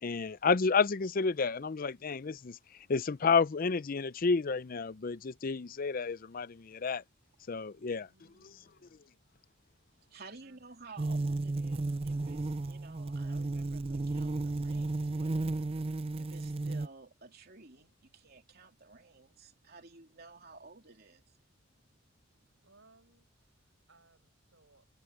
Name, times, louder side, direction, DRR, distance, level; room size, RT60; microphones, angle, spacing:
voice 1, 0.0-2.6 2.9-7.0 7.5-8.1, left 5 dB, 45° left, 0.5 m, -30 dB
voice 2, 8.0-9.0 10.4-10.7 22.6-25.0, right 2 dB, 65° right, 7.1 m, -66 dB
voice 3, 10.0-15.5 16.1-21.4 22.1-22.3, right 3 dB, 50° right, 3.2 m, -54 dB
sound 1, 11.0-16.9, right 2 dB, 30° right, 0.4 m, -33 dB
head